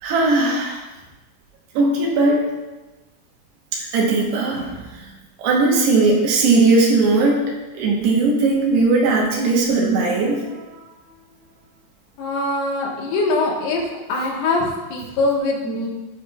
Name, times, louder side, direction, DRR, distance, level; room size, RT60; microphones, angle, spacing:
voice 1, 0.0-0.8 1.7-2.4 3.9-4.8 5.4-7.4 7.7-10.6, right 3 dB, 85° right, -2 dB, 3.3 m, -18 dB
voice 2, 12.2-13.8 14.1-15.9, left 2 dB, 75° left, -2 dB, 3.3 m, -22 dB
14.5 x 5.8 x 2.3 m, 1.1 s
omnidirectional pair, 4.7 m